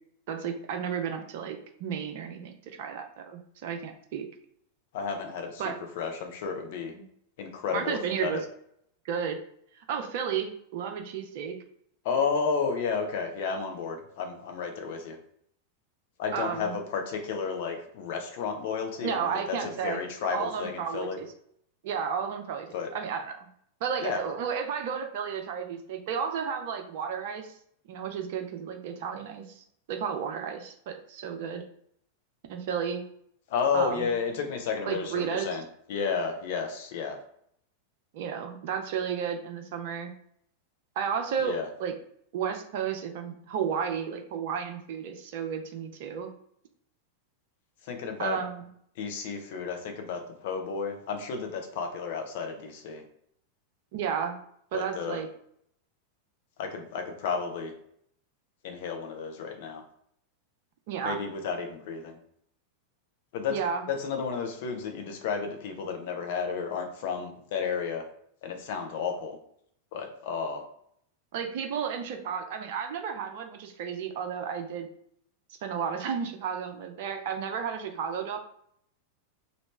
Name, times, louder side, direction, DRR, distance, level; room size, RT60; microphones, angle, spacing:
voice 1, 0.3-4.3 5.6-5.8 6.9-7.1 7.7-8.4 9.0-9.4 9.8-11.6 16.3-16.8 19.0-20.0 20.3-21.3 21.8-23.4 23.8-27.5 27.9-31.6 32.5-33.0 33.7-34.1 34.9-35.5 38.1-40.1 41.0-41.9 42.3-46.3 48.2-48.7 53.9-54.4 54.7-55.3 60.9-61.2 63.5-63.8 71.3-74.9 75.6-78.4, right 7 dB, 50° right, 5 dB, 0.5 m, -32 dB
voice 2, 4.9-6.9 7.4-8.3 12.0-15.2 16.2-21.2 22.7-22.9 24.0-24.2 33.5-35.6 35.9-37.2 41.4-41.7 47.8-48.4 49.0-53.0 54.7-55.2 56.6-57.7 58.6-59.8 61.0-62.2 63.3-63.6 63.9-68.0 68.4-69.4 69.9-70.6, left 5 dB, 50° left, 4 dB, 0.7 m, -32 dB
3.1 x 2.6 x 3.2 m, 0.69 s
figure-of-eight pair, 90°, 0 cm